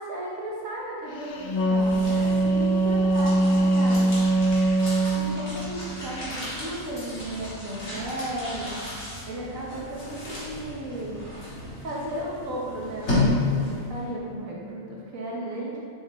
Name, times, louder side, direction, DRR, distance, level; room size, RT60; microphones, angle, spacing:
voice 1, 0.0-4.2 5.1-8.8 9.3-11.2 11.8-15.8, right 1 dB, 80° right, -5 dB, 1.5 m, -35 dB
Wind instrument woodwind instrument, 1.3-5.5, right 2 dB, 80° left, 0.4 m, -22 dB
sound 1, 1.4-14.0, left 2 dB, 60° left, 2.0 m, -33 dB
6.9 x 3.8 x 3.6 m, 2.5 s
omnidirectional pair, 1.4 m